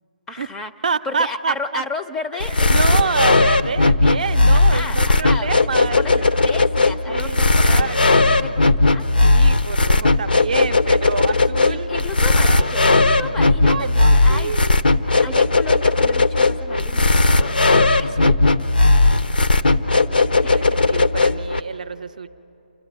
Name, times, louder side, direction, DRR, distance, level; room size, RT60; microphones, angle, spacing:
voice 1, 0.3-0.7 1.0-3.3 4.5-5.7 6.0-9.3 11.7-14.5 15.2-18.4 20.4-20.8, left 3 dB, 10° left, 7 dB, 0.4 m, -33 dB
voice 2, 0.8-1.8 2.3-6.5 7.1-8.4 9.2-11.9 12.3-12.8 13.7-14.8 15.0-15.3 19.2-19.3 19.7-22.3, right 6 dB, 55° right, 13 dB, 0.5 m, -28 dB
sound 1, 2.4-21.6, left 3 dB, 80° left, 0.8 m, -17 dB
28.5 x 13.0 x 7.2 m, 2.9 s
figure-of-eight pair, 150°, 5 cm